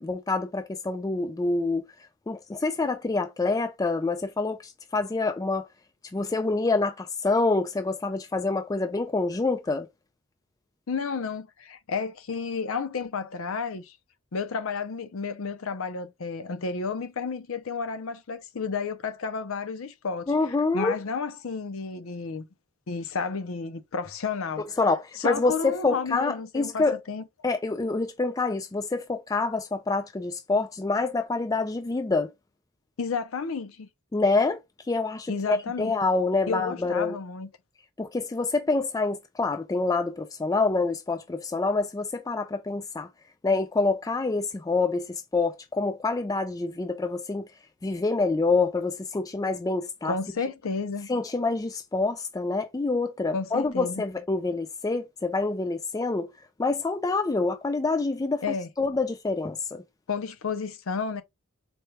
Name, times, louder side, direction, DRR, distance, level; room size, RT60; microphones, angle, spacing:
voice 1, 0.0-1.8 2.3-5.7 6.1-9.9 20.3-21.0 24.8-27.0 27.4-32.3 34.1-34.6 34.9-37.2 38.0-43.1 43.4-47.5 47.8-50.2 51.1-56.3 56.6-58.4 58.8-59.8, left 3 dB, 15° left, 0.3 m, -26 dB
voice 2, 10.9-13.9 14.3-22.5 22.9-24.7 25.2-27.2 33.0-33.9 35.3-35.9 36.5-37.5 50.0-51.1 53.3-54.0 58.4-58.7 60.1-61.2, left 5 dB, 65° left, 0.6 m, -32 dB
4.4 x 2.2 x 3.2 m
head